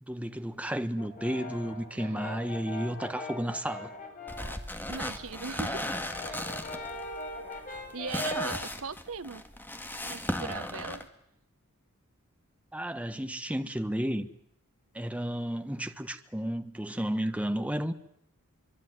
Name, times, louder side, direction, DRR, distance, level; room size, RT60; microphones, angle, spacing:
voice 1, 0.0-3.9 12.7-14.3 14.9-17.9, equal, 5° right, 1.3 m, -32 dB
Brass instrument, 1.0-4.6 5.0-8.6, left 2 dB, 40° left, 5.1 m, -41 dB
sound 1, 4.3-11.0, left 1 dB, 10° left, 2.0 m, -36 dB
voice 2, 4.9-5.9 6.2-6.6 7.9-9.4 10.0-11.1, right 5 dB, 70° right, 1.2 m, -39 dB
24.5 x 24.0 x 9.4 m
head